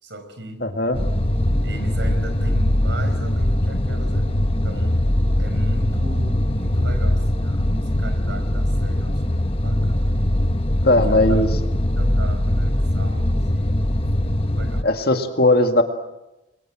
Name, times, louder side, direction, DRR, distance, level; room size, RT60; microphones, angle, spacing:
voice 1, 0.0-0.6 1.6-5.0 5.4-10.1 10.8-11.4 12.0-15.2, right 1 dB, 65° right, 9 dB, 5.0 m, -37 dB
voice 2, 0.6-1.0 10.8-11.5 14.8-15.8, left 2 dB, 55° left, 5 dB, 2.2 m, -18 dB
sound 1, 0.9-14.8, left 1 dB, 30° left, 1.2 m, -21 dB
29.5 x 22.5 x 7.6 m, 0.96 s
head